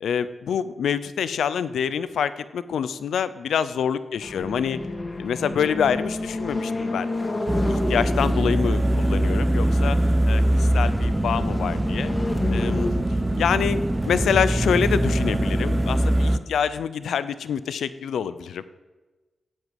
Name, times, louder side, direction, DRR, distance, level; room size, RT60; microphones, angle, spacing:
voice 1, 0.0-4.8 5.2-7.1 7.6-10.0 10.2-12.1 12.5-12.9 13.4-13.8 14.1-18.7, left 7 dB, 85° left, 15 dB, 0.7 m, -26 dB
sound 1, 4.2-12.9, left 2 dB, 35° left, 2.7 m, -31 dB
sound 2, 7.5-16.4, right 1 dB, 15° right, 1.1 m, -22 dB
13.0 x 8.1 x 9.1 m, 1.2 s
cardioid pair, 65°, 0 cm